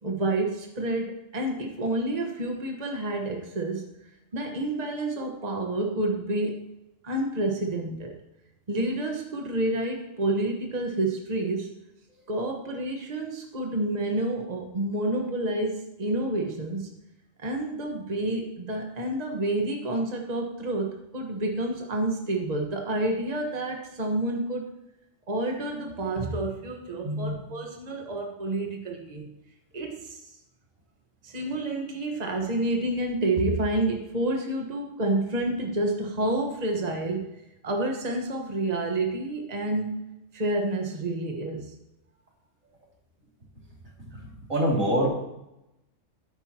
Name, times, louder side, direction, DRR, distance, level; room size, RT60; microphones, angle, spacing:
voice 1, 0.0-3.9 4.3-6.6 7.0-8.2 8.7-11.8 12.3-16.9 17.4-24.7 25.3-29.3 29.7-30.2 31.2-37.3 37.6-40.0 40.3-41.7, right 2 dB, 30° right, 1 dB, 1.4 m, -29 dB
voice 2, 27.0-27.4 44.5-45.1, equal, 85° right, -3 dB, 3.1 m, -24 dB
13.0 x 10.0 x 2.9 m, 0.89 s
omnidirectional pair, 1.3 m